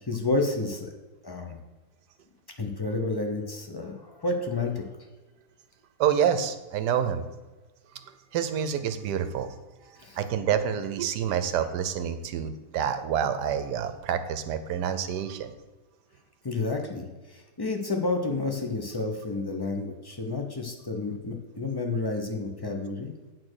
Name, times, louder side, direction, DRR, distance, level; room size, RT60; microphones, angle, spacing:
voice 1, 0.1-0.9 1.2-1.6 2.6-4.8 10.0-10.2 16.4-23.1, left 3 dB, 30° left, 3 dB, 0.4 m, -30 dB
voice 2, 6.0-7.2 8.3-9.5 10.2-15.5, right 8 dB, 70° right, 10 dB, 1.2 m, -27 dB
8.7 x 4.3 x 6.3 m, 1.2 s
omnidirectional pair, 1.9 m